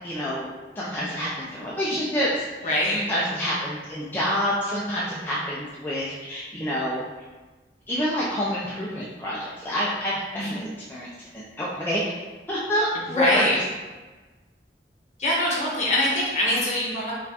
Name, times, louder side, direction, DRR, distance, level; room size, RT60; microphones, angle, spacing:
voice 1, 0.0-0.5 0.8-7.0 7.9-11.1 11.3-12.0 12.5-13.6, equal, 10° left, -7 dB, 0.4 m, -27 dB
voice 2, 2.6-3.0 10.3-10.6 13.1-13.5 15.2-17.1, left 1 dB, 40° left, -5 dB, 1.0 m, -23 dB
4.1 x 2.4 x 2.7 m, 1.3 s
head